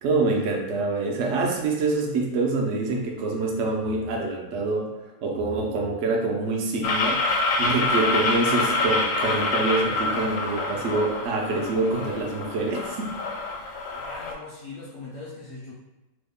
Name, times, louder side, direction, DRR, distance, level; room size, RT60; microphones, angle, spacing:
voice 1, 0.0-4.9 5.2-13.1, right 3 dB, 80° right, 0 dB, 0.6 m, -26 dB
sound 1, 6.8-14.3, left 2 dB, 85° left, 1.3 m, -26 dB
voice 2, 13.9-15.7, left 3 dB, 70° left, -5 dB, 0.8 m, -40 dB
3.1 x 2.1 x 3.4 m, 1.0 s
omnidirectional pair, 2.0 m